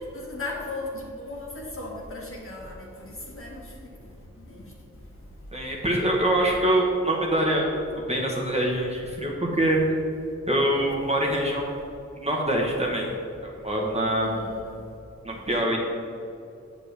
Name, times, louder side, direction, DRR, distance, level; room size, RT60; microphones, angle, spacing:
voice 1, 0.1-2.7 3.0-3.1 3.3-3.6 14.1-14.6, left 2 dB, 45° left, -3 dB, 1.7 m, -36 dB
voice 2, 5.5-7.7 8.1-9.8 10.5-11.7 12.2-13.1 13.4-14.5 15.2-15.8, right 1 dB, 20° right, -2 dB, 1.2 m, -24 dB
8.1 x 6.9 x 3.4 m, 2.6 s
wide cardioid pair, 90°, 30 cm